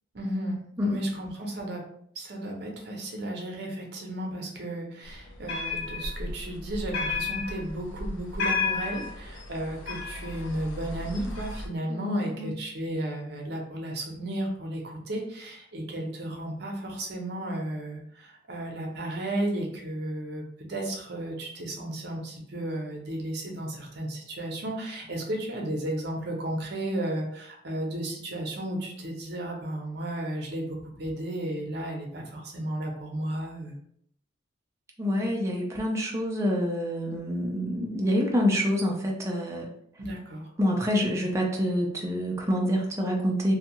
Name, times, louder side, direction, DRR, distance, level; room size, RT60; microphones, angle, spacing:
voice 1, 0.1-1.8 2.1-33.8 40.0-40.5, right 1 dB, 55° right, 1 dB, 0.7 m, -34 dB
sound 1, 5.1-11.7, left 4 dB, 75° left, 0.5 m, -33 dB
voice 2, 11.9-12.5 35.0-39.7 40.6-43.5, equal, 15° right, 0 dB, 0.3 m, -27 dB
2.6 x 2.3 x 2.8 m, 0.67 s
head